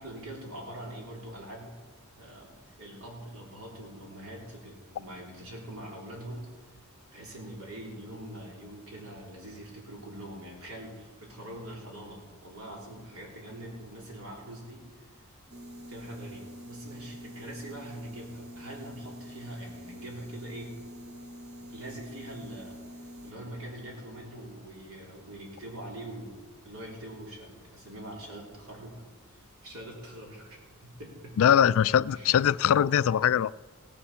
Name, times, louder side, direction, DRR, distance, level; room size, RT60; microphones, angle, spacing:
voice 1, 0.0-1.7 2.2-6.5 7.1-15.1 15.9-20.7 21.7-22.8 23.2-29.0 29.3-31.4 32.1-32.4, right 1 dB, 70° right, -2 dB, 3.7 m, -43 dB
sound 1, 15.5-23.3, equal, 50° right, 1.0 m, -46 dB
voice 2, 31.4-33.5, left 9 dB, 65° left, 18 dB, 0.3 m, -22 dB
17.0 x 7.3 x 6.9 m, 1.3 s
head